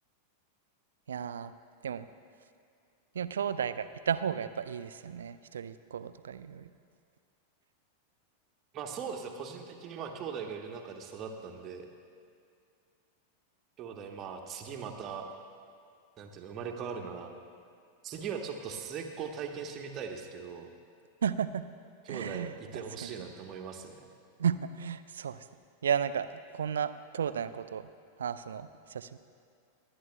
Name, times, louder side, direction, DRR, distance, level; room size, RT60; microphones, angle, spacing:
voice 1, 1.1-1.5 1.8-2.1 3.1-6.7 21.2-21.6 22.1-23.3 24.4-25.4 25.8-26.3 26.5-27.9 28.2-29.2, right 8 dB, 65° right, 13 dB, 0.4 m, -33 dB
voice 2, 8.7-11.9 13.8-15.3 16.2-17.3 18.0-20.7 22.0-24.0, right 6 dB, 30° right, 3 dB, 1.1 m, -40 dB
27.0 x 9.8 x 2.2 m, 2.3 s
figure-of-eight pair, 90°, 0 cm